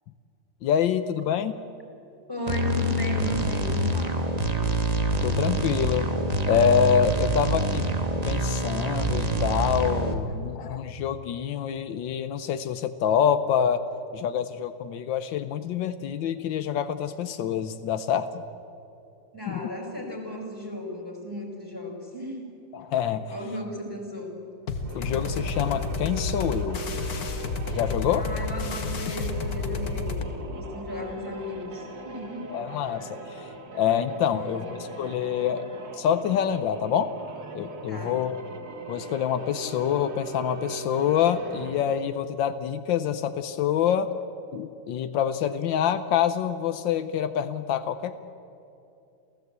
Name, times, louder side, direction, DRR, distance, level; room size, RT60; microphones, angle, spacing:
voice 1, 0.6-1.5 5.2-6.1 6.5-7.8 8.2-13.8 14.1-18.3 19.5-19.6 22.7-23.3 24.9-26.8 27.7-28.3 32.5-33.5 33.7-35.7 36.0-37.1 37.5-38.4 38.9-44.1 44.5-48.2, left 8 dB, 85° left, 10 dB, 1.5 m, -26 dB
voice 2, 2.3-4.2 10.3-10.5 19.3-22.5 22.8-22.9 23.3-24.4 28.1-32.5 34.3-34.9 37.9-38.2, equal, 10° left, 1 dB, 4.6 m, -35 dB
sound 1, 2.5-10.1, right 1 dB, 25° right, 1.3 m, -26 dB
sound 2, 24.7-30.3, left 4 dB, 55° left, 1.7 m, -31 dB
sound 3, 24.7-42.2, right 3 dB, 80° right, 2.6 m, -40 dB
28.5 x 15.5 x 8.1 m, 2.7 s
omnidirectional pair, 2.0 m